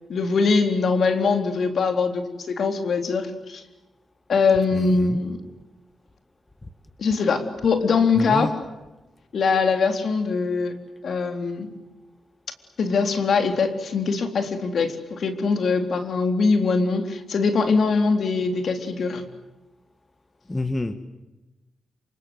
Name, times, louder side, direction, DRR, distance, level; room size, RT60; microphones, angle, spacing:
voice 1, 0.1-3.6 4.3-5.4 7.0-8.6 9.3-10.8 11.0-11.7 12.8-19.2, left 4 dB, 65° left, 7 dB, 3.8 m, -22 dB
voice 2, 4.7-5.2 8.2-8.5 20.5-20.9, left 2 dB, 20° left, 10 dB, 1.9 m, -27 dB
27.5 x 26.0 x 8.1 m, 1.0 s
cardioid pair, 65°, 0 cm